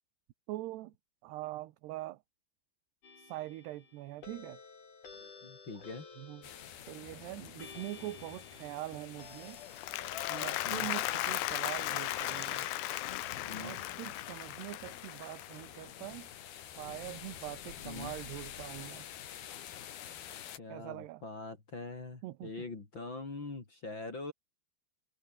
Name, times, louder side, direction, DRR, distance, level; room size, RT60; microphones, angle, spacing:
voice 1, 0.5-0.9 1.2-2.2 3.2-4.6 6.2-6.5 6.9-9.6 10.3-12.7 13.6-16.3 16.6-19.1 20.7-21.2 22.2-22.5, right 17 dB, 75° right, 3.1 m, -43 dB
sound 1, 3.0-14.3, left 4 dB, 45° left, 6.5 m, -53 dB
voice 2, 5.2-6.1 10.6-10.9 13.4-13.8 17.8-18.1 20.6-24.3, left 3 dB, 30° left, 3.6 m, -43 dB
sound 2, 6.4-20.6, left 10 dB, 65° left, 3.9 m, -49 dB
Applause, 9.6-15.9, left 15 dB, 80° left, 3.2 m, -36 dB
omnidirectional pair, 5.0 m